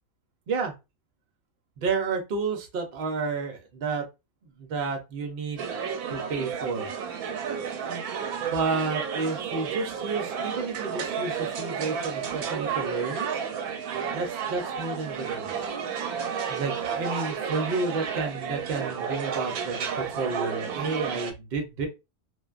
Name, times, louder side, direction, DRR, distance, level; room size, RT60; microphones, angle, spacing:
voice 1, 1.8-4.1 4.4-5.7 6.1-6.9 8.4-13.3 14.1-15.5 16.5-21.9, right 4 dB, 55° right, 0.7 m, -31 dB
sound 1, 5.6-21.3, right 7 dB, 90° right, 1.1 m, -32 dB
2.5 x 2.1 x 2.3 m
omnidirectional pair, 1.5 m